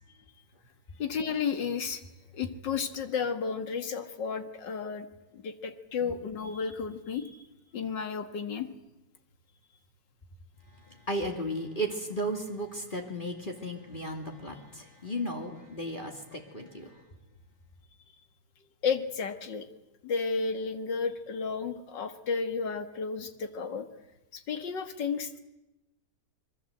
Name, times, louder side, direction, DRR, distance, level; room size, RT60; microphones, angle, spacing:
voice 1, 1.0-2.0 2.3-5.1 5.3-7.3 7.7-8.7 18.8-19.7 20.0-23.9 24.3-25.4, left 5 dB, 75° left, 8 dB, 2.3 m, -32 dB
voice 2, 11.1-16.9, right 1 dB, 25° left, 3 dB, 2.6 m, -34 dB
26.5 x 22.0 x 7.9 m, 0.98 s
omnidirectional pair, 1.9 m